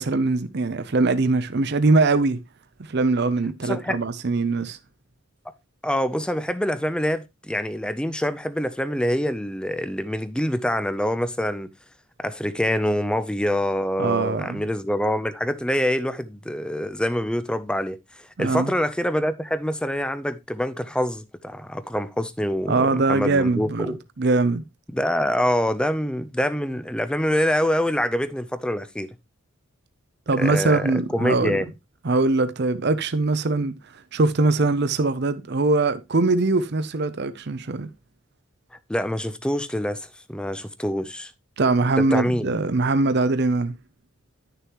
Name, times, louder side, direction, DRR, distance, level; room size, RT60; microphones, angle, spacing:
voice 1, 0.0-2.4 2.8-4.8 14.0-14.6 18.4-18.7 22.7-24.6 30.3-31.6 32.0-37.9 41.6-43.7, right 3 dB, 55° right, 0.6 m, -22 dB
voice 2, 3.6-4.0 5.8-11.7 12.2-24.0 24.9-29.1 30.4-30.9 31.1-31.7 38.9-41.3 42.0-42.6, equal, 5° left, 0.6 m, -25 dB
11.0 x 6.8 x 3.0 m
head